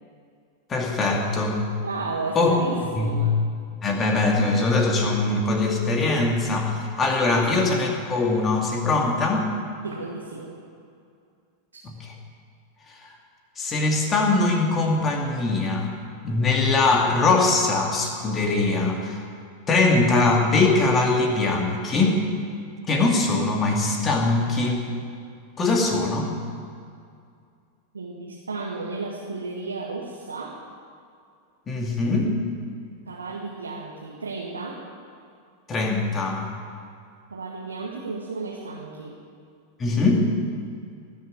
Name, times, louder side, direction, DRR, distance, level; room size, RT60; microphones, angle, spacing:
voice 1, 0.7-1.6 2.4-2.6 3.0-3.3 3.8-9.4 11.8-12.1 13.6-15.9 16.2-19.2 19.7-22.2 22.9-24.8 25.6-26.3 31.7-32.3 35.7-36.5 39.8-40.2, left 3 dB, 20° left, 1 dB, 2.4 m, -22 dB
voice 2, 1.8-3.4 7.2-7.3 8.9-9.1 9.8-10.5 27.9-30.6 33.1-34.8 37.3-39.2, right 3 dB, 75° right, -2 dB, 1.7 m, -33 dB
19.5 x 7.2 x 9.2 m, 2.3 s
figure-of-eight pair, 90°, 0 cm